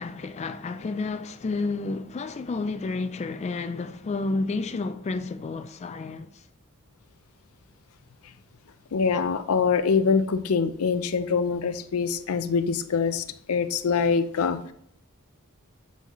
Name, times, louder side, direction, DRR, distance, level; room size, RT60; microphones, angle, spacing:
voice 1, 0.0-6.5, left 3 dB, 30° left, 0.3 m, -31 dB
voice 2, 8.9-14.7, left 5 dB, 85° left, 0.5 m, -24 dB
8.3 x 4.1 x 3.0 m
head